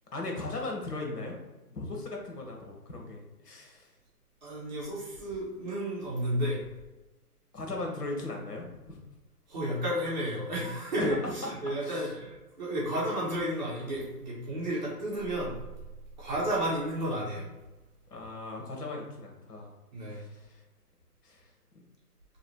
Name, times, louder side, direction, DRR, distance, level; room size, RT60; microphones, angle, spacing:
voice 1, 0.1-1.4 1.7-3.9 7.5-9.0 11.0-11.3 11.8-12.1 18.1-19.7 20.1-20.6 21.2-21.5, left 2 dB, 75° left, 1 dB, 1.3 m, -38 dB
voice 2, 4.4-6.6 9.5-15.6 16.2-17.5 19.9-20.2, right 1 dB, 30° right, -7 dB, 1.2 m, -32 dB
3.2 x 2.8 x 4.2 m, 1.1 s
hypercardioid pair, 160°, 47 cm